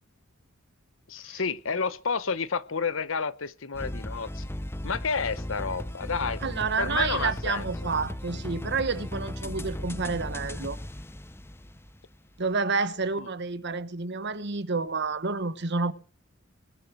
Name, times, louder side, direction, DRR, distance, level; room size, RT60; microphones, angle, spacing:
voice 1, 1.1-4.5 4.8-6.4 6.8-7.6 13.2-13.3, left 5 dB, 70° left, 0.9 m, -30 dB
sound 1, 3.7-12.2, left 1 dB, 10° left, 0.7 m, -36 dB
voice 2, 6.4-10.8 12.4-15.9, right 4 dB, 55° right, 1.2 m, -29 dB
20.5 x 10.0 x 6.1 m
head